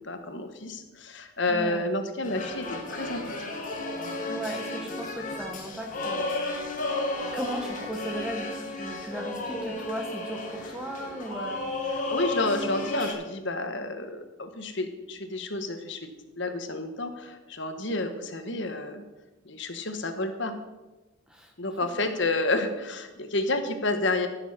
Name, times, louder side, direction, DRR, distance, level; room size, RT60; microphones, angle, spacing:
voice 1, 0.0-3.2 11.9-16.1 16.4-19.1 19.4-20.5 21.6-24.3, left 2 dB, 60° left, 7 dB, 1.4 m, -30 dB
voice 2, 1.5-1.9 4.3-6.3 7.3-12.0 21.3-21.5, equal, 5° right, 2 dB, 1.1 m, -36 dB
sound 1, 2.2-13.1, left 2 dB, 40° left, 2.1 m, -33 dB
15.0 x 7.2 x 5.8 m, 1.1 s
head